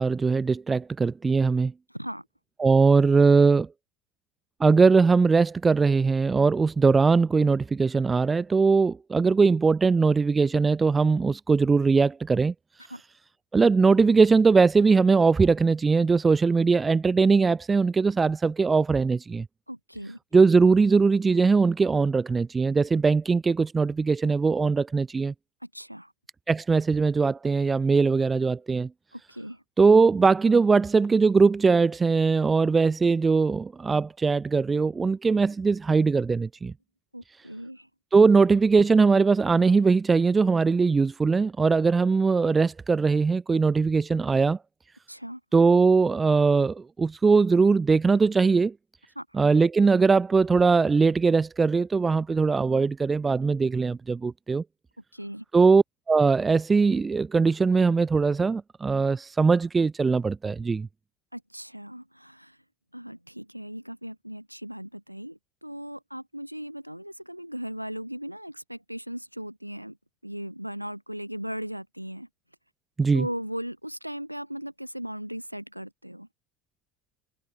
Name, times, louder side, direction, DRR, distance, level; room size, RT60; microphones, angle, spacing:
voice 1, 0.0-1.7 2.6-3.7 4.6-12.5 13.5-19.5 20.3-25.3 26.5-28.9 29.8-36.7 38.1-44.6 45.5-48.7 49.3-54.6 55.5-60.9 73.0-73.3, right 4 dB, 20° right, 0.5 m, -21 dB
voice 2, 1.9-2.3 12.9-13.0 19.7-20.2 25.6-26.1 29.1-29.6 37.1-37.9 45.1-45.4 49.2-49.3 55.1-55.4 61.3-62.6 62.9-70.0 70.2-72.3 73.1-76.3, equal, 90° right, 7.2 m, -37 dB
figure-of-eight pair, 70°, 0 cm